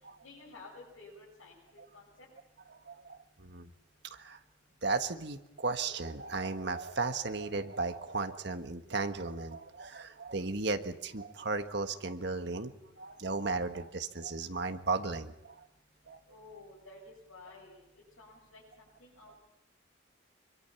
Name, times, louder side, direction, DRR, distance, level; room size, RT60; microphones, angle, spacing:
voice 1, 0.2-2.3 16.3-17.8 18.2-19.3, left 3 dB, 85° left, -4 dB, 7.5 m, -53 dB
voice 2, 2.9-3.7 4.1-4.4 4.8-12.7 13.0-15.6 16.1-16.2, right 3 dB, 55° right, 7 dB, 1.5 m, -35 dB
26.0 x 23.5 x 5.9 m, 0.91 s
head